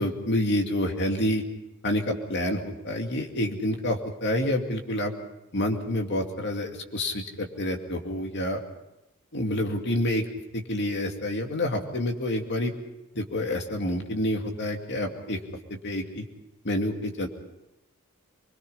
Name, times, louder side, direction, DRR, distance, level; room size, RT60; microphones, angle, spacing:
voice 1, 0.0-1.4 1.8-5.1 5.5-8.6 9.3-10.2 10.5-12.7 13.1-15.4 15.8-16.2 16.6-17.3, left 1 dB, 50° left, 3 dB, 2.4 m, -28 dB
24.0 x 22.0 x 5.6 m, 0.93 s
head